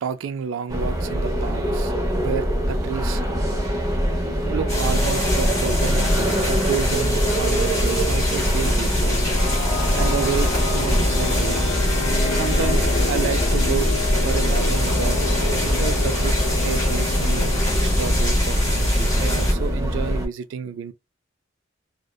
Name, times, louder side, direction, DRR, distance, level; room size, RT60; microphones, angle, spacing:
voice 1, 0.0-1.9 2.2-3.2 4.5-9.2 9.9-11.7 12.3-15.2 15.6-16.4 16.6-20.9, right 7 dB, 85° right, 0.3 m, -30 dB
sound 1, 0.7-20.3, equal, 20° right, 0.8 m, -24 dB
sound 2, 4.7-19.5, left 1 dB, 15° left, 1.5 m, -24 dB
sound 3, 8.6-19.4, left 4 dB, 70° left, 0.3 m, -32 dB
2.6 x 2.1 x 2.2 m
head